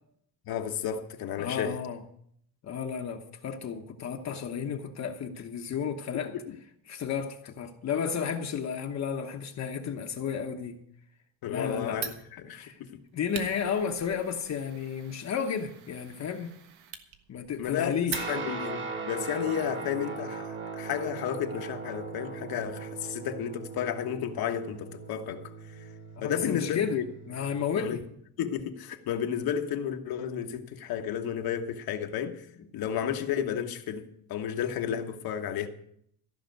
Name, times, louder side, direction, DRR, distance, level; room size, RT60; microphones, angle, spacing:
voice 1, 0.5-1.8 6.3-6.6 11.4-13.0 17.6-17.9 18.3-25.9 26.2-27.0 27.8-28.0 28.4-32.5 32.7-35.7, left 9 dB, 65° left, 1.3 m, -32 dB
voice 2, 1.4-2.0 2.6-6.3 6.9-10.8 11.5-12.0 12.5-12.8 13.1-16.6 17.3-18.3 26.2-27.0 27.3-28.0, left 7 dB, 45° left, 1.1 m, -32 dB
Fire, 11.9-18.7, right 8 dB, 75° right, 1.5 m, -43 dB
Guitar, 18.1-27.7, right 4 dB, 30° right, 2.0 m, -39 dB
14.5 x 5.9 x 9.2 m
cardioid pair, 140°, 38 cm